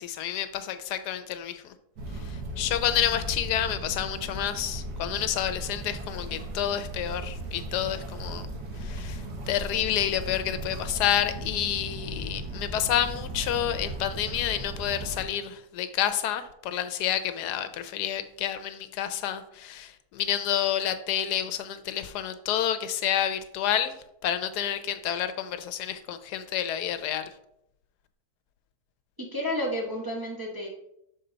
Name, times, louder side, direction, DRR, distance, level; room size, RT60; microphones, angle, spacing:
voice 1, 0.0-1.7 2.2-8.5 8.8-24.0 24.2-27.3, left 10 dB, 80° left, 10 dB, 1.1 m, -29 dB
sound 1, 1.9-15.2, right 1 dB, 90° right, 1.9 m, -37 dB
voice 2, 29.2-30.7, left 1 dB, 20° right, -2 dB, 0.7 m, -31 dB
6.6 x 4.5 x 3.9 m, 0.78 s
omnidirectional pair, 1.7 m